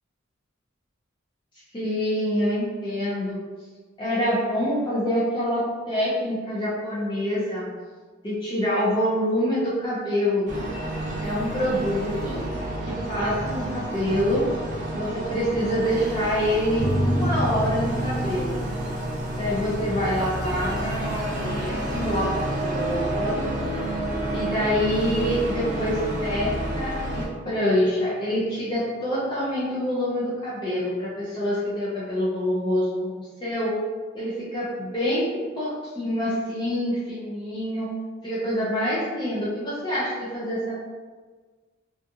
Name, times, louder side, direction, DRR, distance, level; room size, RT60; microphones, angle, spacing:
voice 1, 1.7-3.4 4.0-7.7 8.2-10.5 11.1-12.4 12.9-14.5 14.9-18.6 19.4-23.5 24.3-33.8 34.1-35.3 35.6-37.9 38.2-40.9, equal, 25° left, -8 dB, 0.5 m, -26 dB
sound 1, 10.5-27.3, right 1 dB, 40° right, 0.5 m, -30 dB
sound 2, 16.8-27.8, equal, 55° left, 1.0 m, -32 dB
2.4 x 2.4 x 2.6 m, 1.4 s
head